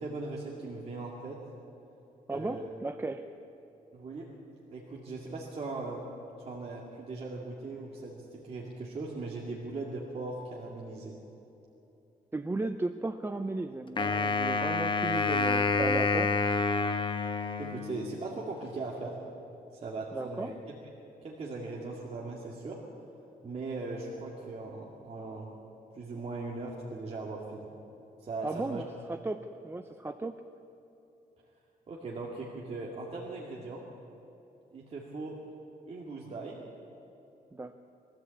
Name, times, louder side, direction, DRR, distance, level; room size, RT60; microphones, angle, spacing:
voice 1, 0.0-1.4 2.3-2.7 3.9-4.3 4.7-6.1 6.4-11.2 17.6-19.2 19.7-20.5 21.2-22.8 23.4-25.5 25.9-27.7 28.2-28.8 31.9-33.8 34.7-35.4 35.9-36.6, right 3 dB, 40° right, -3 dB, 2.3 m, -39 dB
voice 2, 2.3-3.3 12.3-16.3 20.1-20.5 28.4-30.4 37.5-37.8, right 2 dB, 15° right, 8 dB, 0.5 m, -35 dB
Wind instrument woodwind instrument, 14.0-18.3, left 4 dB, 30° left, 1.1 m, -28 dB
22.5 x 14.0 x 8.5 m, 3.0 s
wide cardioid pair, 145°, 15 cm